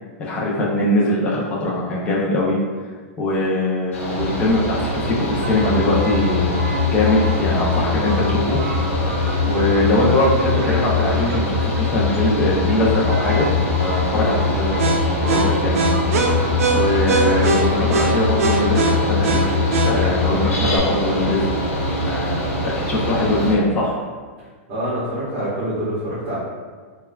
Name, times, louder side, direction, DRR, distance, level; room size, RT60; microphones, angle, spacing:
voice 1, 0.2-2.6 3.2-8.6 9.0-13.5 13.8-14.8 15.2-15.8 16.7-19.6 19.8-21.4 22.0-23.9, left 2 dB, 15° left, -5 dB, 0.4 m, -21 dB
Mechanical fan, 3.9-23.5, right 1 dB, 85° left, 0.9 m, -24 dB
sound 1, 5.4-20.8, left 3 dB, 80° right, 0.4 m, -22 dB
voice 2, 24.7-26.4, right 1 dB, 30° right, -14 dB, 1.1 m, -25 dB
3.3 x 2.2 x 2.2 m, 1.5 s
supercardioid pair, 165°, 8 cm